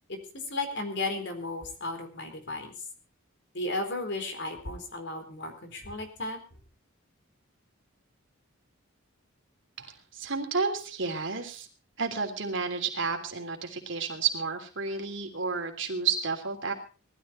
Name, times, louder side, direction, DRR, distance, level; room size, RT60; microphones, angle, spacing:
voice 1, 0.5-2.7 3.5-6.4, left 2 dB, 55° left, 6 dB, 4.1 m, -34 dB
voice 2, 9.8-11.7 12.0-16.7, right 5 dB, 60° right, 4 dB, 3.2 m, -31 dB
19.5 x 13.5 x 4.3 m, 0.35 s
head